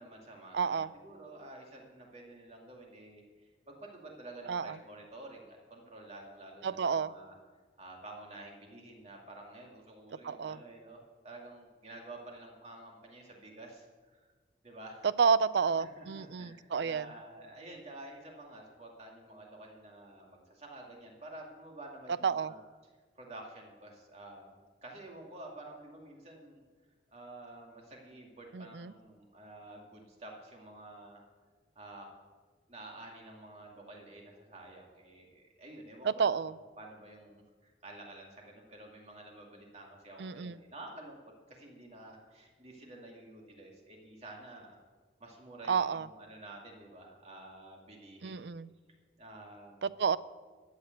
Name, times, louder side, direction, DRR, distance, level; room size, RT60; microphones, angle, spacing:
voice 1, 0.0-7.3 7.8-11.0 11.2-13.9 14.2-14.3 14.6-15.1 15.8-22.6 23.2-26.6 27.1-31.2 31.8-32.1 32.7-36.5 36.8-44.8 45.2-48.5 49.2-49.9, right 2 dB, 35° right, 0 dB, 2.4 m, -50 dB
voice 2, 0.5-0.9 4.5-4.7 6.6-7.1 10.2-10.6 15.2-17.1 22.2-22.5 28.5-28.9 36.0-36.5 40.2-40.6 45.7-46.1 48.2-48.7 49.8-50.2, right 6 dB, 75° right, 17 dB, 0.4 m, -30 dB
13.5 x 8.1 x 7.9 m, 1.4 s
head